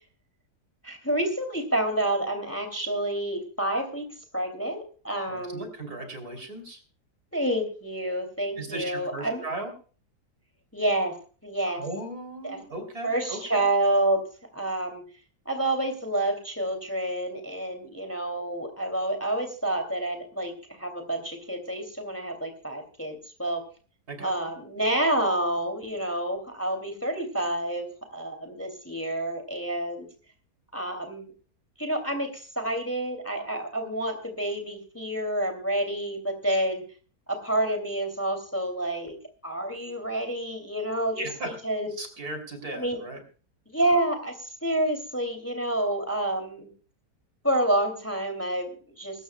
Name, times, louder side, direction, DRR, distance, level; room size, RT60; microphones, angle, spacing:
voice 1, 0.8-4.1 4.3-5.7 7.3-9.4 10.7-11.1 11.4-11.8 12.4-12.6 13.0-14.2 14.5-15.0 15.5-20.5 20.8-23.6 24.2-30.1 30.7-31.3 31.8-36.8 37.3-39.2 39.4-41.9 42.8-43.0 43.7-46.7 47.4-49.2, right 1 dB, 10° left, 5 dB, 2.6 m, -28 dB
voice 2, 5.3-6.8 8.6-9.7 11.7-13.7 24.1-24.3 41.1-41.5 42.0-43.2, right 2 dB, 60° right, 6 dB, 3.7 m, -37 dB
24.0 x 13.5 x 2.2 m, 0.38 s
omnidirectional pair, 1.8 m